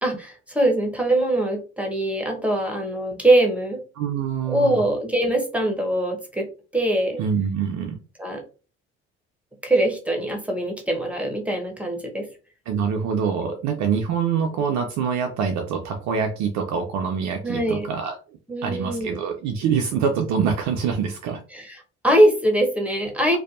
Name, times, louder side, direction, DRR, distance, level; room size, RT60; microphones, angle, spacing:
voice 1, 0.0-3.8 4.4-6.5 6.7-7.2 8.2-8.4 9.6-12.3 13.4-13.6 17.4-17.9 18.5-19.2 21.5-23.4, right 1 dB, 5° right, 1 dB, 0.8 m, -22 dB
voice 2, 4.0-4.8 7.2-8.0 12.7-18.2 18.6-21.4, right 6 dB, 55° right, 3 dB, 0.5 m, -25 dB
2.6 x 2.2 x 2.4 m, 0.35 s
figure-of-eight pair, 50°, 35 cm